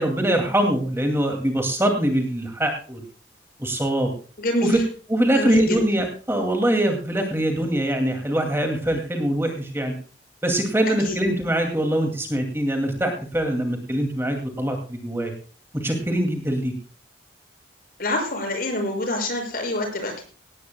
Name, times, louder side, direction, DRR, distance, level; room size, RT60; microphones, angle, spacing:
voice 1, 0.0-3.0 3.6-4.1 4.6-4.8 5.1-9.9 10.4-15.3 15.7-16.7, right 1 dB, 15° right, 4 dB, 2.3 m, -23 dB
voice 2, 4.4-4.8 5.3-5.8 11.0-11.2 18.0-20.2, left 1 dB, 50° left, 3 dB, 6.3 m, -26 dB
18.0 x 16.5 x 2.2 m, 0.39 s
head